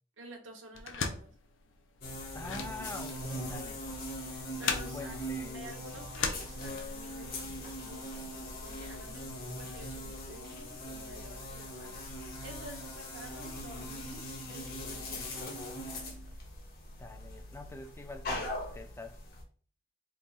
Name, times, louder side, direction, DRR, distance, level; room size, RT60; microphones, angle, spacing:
voice 1, 0.2-1.3 4.6-5.1 5.5-15.4 15.8-16.1, right 2 dB, 85° right, 0.9 m, -51 dB
sound 1, 0.7-7.1, left 5 dB, 85° left, 0.6 m, -38 dB
sound 2, 2.0-19.4, left 1 dB, 50° left, 1.0 m, -41 dB
voice 2, 2.3-3.8 4.9-5.6 9.1-9.7 17.0-19.2, left 2 dB, 15° left, 0.3 m, -45 dB
3.5 x 2.3 x 4.0 m
head